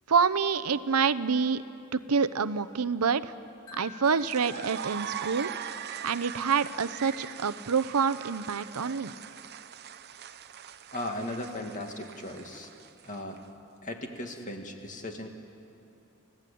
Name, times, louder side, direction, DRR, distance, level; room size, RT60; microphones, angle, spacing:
voice 1, 0.1-1.6 1.9-3.3 3.7-5.5 6.0-9.1, right 5 dB, 85° right, 12 dB, 0.8 m, -27 dB
Wind chime, 3.7-6.8, left 6 dB, 85° left, 2.7 m, -51 dB
sound 1, 4.0-13.4, right 8 dB, 50° right, 0.7 m, -41 dB
voice 2, 10.9-12.7 13.0-13.4 13.8-15.3, left 1 dB, 35° left, 3 dB, 2.3 m, -37 dB
30.0 x 16.5 x 8.6 m, 2.8 s
head